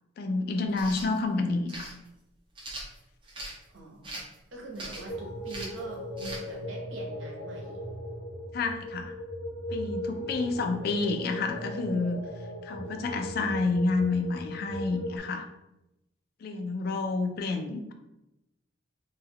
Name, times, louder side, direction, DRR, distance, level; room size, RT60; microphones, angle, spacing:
voice 1, 0.2-1.9 8.5-9.1 9.7-12.2 12.6-15.4 16.4-17.9, left 3 dB, 50° left, 5 dB, 0.3 m, -29 dB
sound 1, 0.7-1.1 1.7-1.9 2.6-3.6 4.0-4.4 4.8-5.1 5.5-5.8 6.2-6.4, right 2 dB, 25° right, 0.5 m, -40 dB
voice 2, 3.7-4.2 4.5-7.8 10.1-10.6, right 3 dB, 80° right, -1 dB, 0.7 m, -44 dB
sound 2, 5.1-15.2, equal, 85° left, 0.9 m, -38 dB
2.2 x 2.2 x 3.3 m, 0.92 s
head